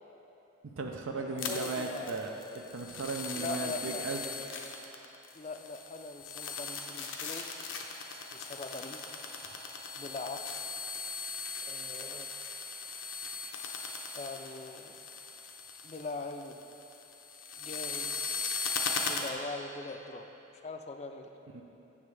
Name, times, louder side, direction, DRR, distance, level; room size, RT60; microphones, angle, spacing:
voice 1, 0.6-4.2 8.1-8.4 9.5-9.7 21.5-21.6, right 3 dB, 85° right, 2 dB, 0.5 m, -37 dB
voice 2, 1.2-2.2 3.3-4.1 5.3-7.5 8.3-9.0 10.0-10.6 11.6-12.3 14.1-15.0 15.8-16.6 17.6-18.1 19.0-20.3 20.6-21.3, left 3 dB, 35° left, 6 dB, 0.3 m, -41 dB
sound 1, 1.4-19.3, left 4 dB, 80° left, 0.6 m, -39 dB
8.5 x 7.0 x 3.3 m, 3.0 s
head